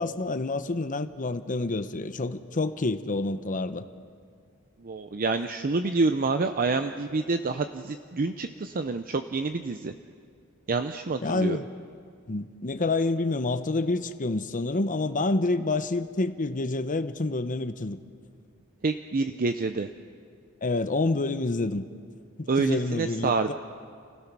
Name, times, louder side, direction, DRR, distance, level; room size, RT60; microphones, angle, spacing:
voice 1, 0.0-3.8 11.2-11.7 12.3-18.0 20.6-21.8 22.6-23.5, left 2 dB, 40° left, 0.8 m, -28 dB
voice 2, 4.8-9.9 10.7-11.6 18.8-19.9 22.5-23.5, right 3 dB, 40° right, 0.6 m, -27 dB
29.5 x 16.5 x 6.1 m
head